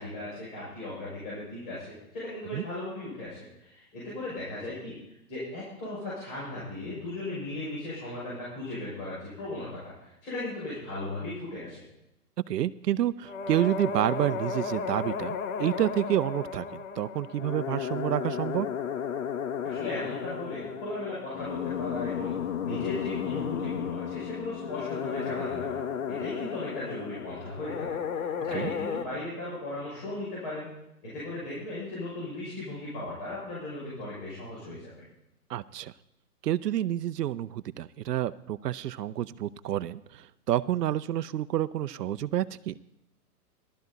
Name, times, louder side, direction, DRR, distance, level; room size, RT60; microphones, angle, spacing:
voice 1, 0.0-1.9 2.1-5.0 5.3-9.9 10.2-11.8 19.6-22.4 22.6-25.8 26.1-28.0 28.4-30.7 31.0-35.0, left 2 dB, 35° left, -8 dB, 6.0 m, -37 dB
voice 2, 12.5-18.7 28.5-28.7 35.5-35.9 36.4-42.7, right 12 dB, 80° right, 15 dB, 0.7 m, -29 dB
sound 1, 13.3-29.1, left 7 dB, 55° left, 1.1 m, -34 dB
14.5 x 12.5 x 4.0 m, 0.84 s
hypercardioid pair, 170°, 47 cm